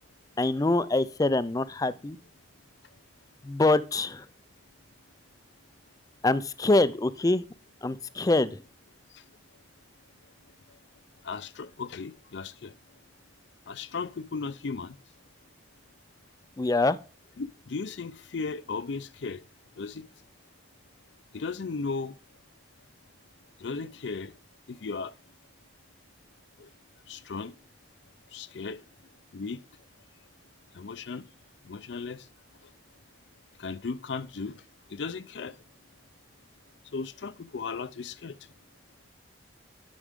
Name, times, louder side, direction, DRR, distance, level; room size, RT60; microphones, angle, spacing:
voice 1, 0.4-2.2 3.4-4.2 6.2-7.4 7.8-8.6 16.6-17.0, left 2 dB, 20° left, 0.4 m, -24 dB
voice 2, 11.2-12.7 13.7-15.0 17.4-19.4 19.8-20.0 21.3-22.2 23.6-24.3 24.7-25.1 26.6-26.7 27.1-27.5 28.3-28.8 29.3-29.6 30.7-31.2 31.7-32.2 33.6-34.6 34.9-35.6 36.9-38.4, left 4 dB, 65° left, 0.5 m, -36 dB
9.9 x 6.1 x 3.6 m
head